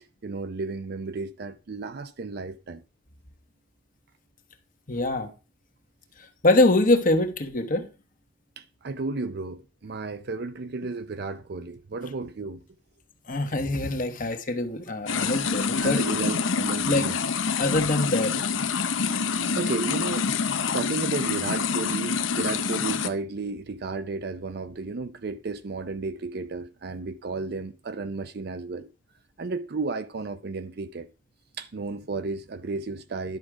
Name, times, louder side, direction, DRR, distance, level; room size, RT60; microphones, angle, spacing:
voice 1, 0.2-2.8 8.6-12.6 14.9-17.2 19.5-20.3 20.7-28.9 29.4-31.1 31.6-33.4, right 3 dB, 55° right, 0.5 m, -33 dB
voice 2, 4.9-5.3 6.4-7.9 13.3-16.0 16.8-17.1 17.6-18.3, left 2 dB, 45° left, 1.2 m, -23 dB
sound 1, 15.1-23.1, left 5 dB, 80° left, 0.8 m, -27 dB
11.0 x 6.3 x 4.8 m
head